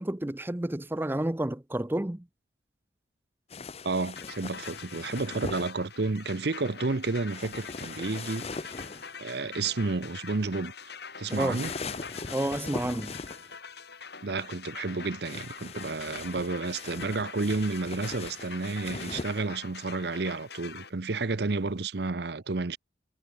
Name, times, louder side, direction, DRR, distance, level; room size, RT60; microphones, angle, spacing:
voice 1, 0.0-2.3 11.3-11.6 12.3-13.2, right 1 dB, 10° right, 0.5 m, -30 dB
sound 1, 3.5-5.7 7.3-9.2 11.3-13.6 15.2-19.4, left 4 dB, 35° left, 0.7 m, -40 dB
voice 2, 3.8-8.7 9.2-10.7 11.2-11.7 14.2-22.8, right 3 dB, 60° right, 0.8 m, -31 dB
sound 2, 4.2-20.9, left 5 dB, 60° left, 4.3 m, -44 dB
head